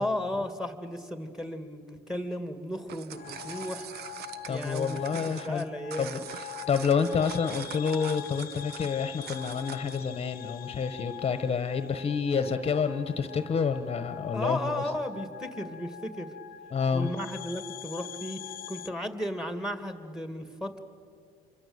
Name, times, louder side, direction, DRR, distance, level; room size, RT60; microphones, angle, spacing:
voice 1, 0.0-3.9 4.5-6.1 14.3-16.3 16.9-18.4 18.7-20.8, left 1 dB, 5° right, 8 dB, 2.4 m, -34 dB
sound 1, 2.7-10.1, right 10 dB, 70° right, 0.9 m, -44 dB
sound 2, 3.1-18.9, left 10 dB, 60° left, 0.7 m, -43 dB
voice 2, 4.5-5.6 6.0-14.8 16.7-17.1, left 6 dB, 35° left, 10 dB, 1.2 m, -29 dB
27.5 x 24.0 x 8.1 m, 2.2 s
cardioid pair, 110°, 17 cm